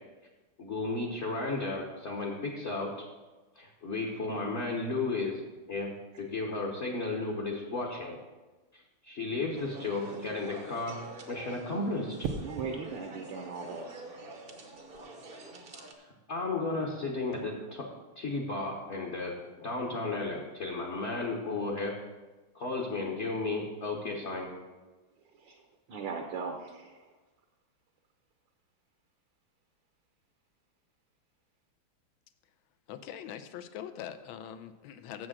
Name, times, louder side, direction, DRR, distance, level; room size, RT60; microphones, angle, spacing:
voice 1, 0.6-2.9 3.5-5.4 5.7-8.2 8.7-11.0 11.3-12.2 16.3-17.9 18.2-21.9 22.5-24.5, left 3 dB, 40° left, -1 dB, 1.1 m, -34 dB
sound 1, 9.6-15.9, right 2 dB, 40° right, 0.8 m, -47 dB
sound 2, 12.2-12.8 14.7-15.0, right 5 dB, 85° right, 1.7 m, -37 dB
voice 2, 12.4-14.0 25.4-25.6 25.9-26.9, right 5 dB, 65° right, 4 dB, 1.5 m, -38 dB
voice 3, 32.9-35.3, left 9 dB, 75° left, 11 dB, 1.3 m, -42 dB
7.3 x 6.2 x 7.4 m, 1.2 s
omnidirectional pair, 2.4 m